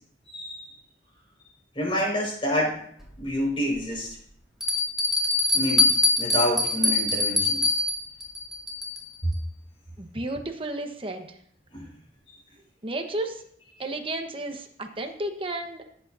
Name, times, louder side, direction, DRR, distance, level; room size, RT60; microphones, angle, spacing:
voice 1, 0.3-0.7 1.8-2.8 3.2-4.2 5.5-5.9 6.2-7.6 9.2-9.3 11.7-11.9, equal, 30° left, -3 dB, 5.5 m, -27 dB
Bell, 3.0-3.1 3.8-3.9 4.6-9.2, left 2 dB, 5° right, 2.3 m, -24 dB
voice 2, 10.0-11.3 12.8-13.4 13.8-15.9, right 1 dB, 30° right, 5 dB, 1.2 m, -32 dB
17.0 x 8.6 x 2.7 m, 0.64 s
head